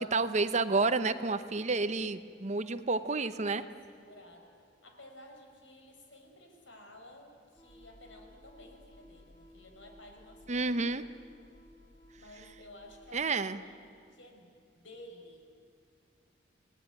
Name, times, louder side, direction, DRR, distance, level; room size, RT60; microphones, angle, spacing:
voice 1, 0.0-3.6 10.5-11.0 13.1-13.6, right 3 dB, 40° right, 11 dB, 0.9 m, -30 dB
voice 2, 3.4-4.5 4.8-11.0 12.2-15.4, left 1 dB, 85° left, 3 dB, 5.0 m, -54 dB
sound 1, 7.6-13.3, left 1 dB, 20° left, 3.3 m, -57 dB
28.5 x 18.5 x 9.3 m, 2.4 s
head